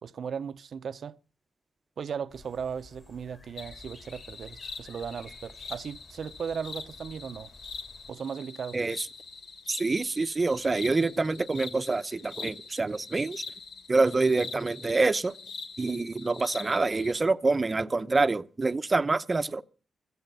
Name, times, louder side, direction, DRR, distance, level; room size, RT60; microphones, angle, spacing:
voice 1, 0.0-1.2 2.0-7.5 8.1-8.8, right 7 dB, 65° right, 0.8 m, -37 dB
sound 1, 2.3-8.1, left 2 dB, 35° left, 3.2 m, -53 dB
sound 2, 3.6-17.1, left 4 dB, 80° left, 2.3 m, -43 dB
voice 2, 8.7-9.1 9.7-13.4 13.9-15.3 15.8-19.6, right 3 dB, 30° right, 0.8 m, -26 dB
16.5 x 14.0 x 5.5 m
cardioid pair, 80°, 0 cm